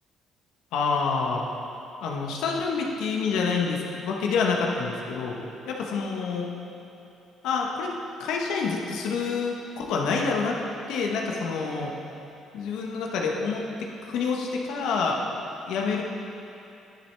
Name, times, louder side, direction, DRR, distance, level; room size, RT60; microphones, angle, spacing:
voice 1, 0.7-1.4 2.0-6.5 7.4-7.9 8.2-10.6 10.9-11.9 12.5-16.0, left 4 dB, 80° left, 0 dB, 1.0 m, -27 dB
10.5 x 7.1 x 3.3 m, 2.9 s
cardioid pair, 100°, 0 cm